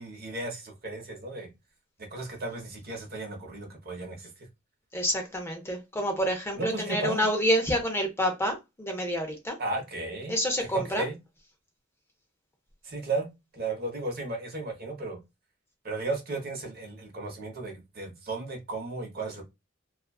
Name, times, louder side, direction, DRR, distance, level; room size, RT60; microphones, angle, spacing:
voice 1, 0.0-1.5 2.1-4.5 6.5-7.3 9.6-10.3 10.7-11.1 12.8-13.3 13.5-15.2 15.8-19.4, right 3 dB, 50° right, 0.8 m, -34 dB
voice 2, 4.9-9.6 10.3-11.0, equal, 10° left, 0.5 m, -28 dB
2.4 x 2.3 x 2.2 m
head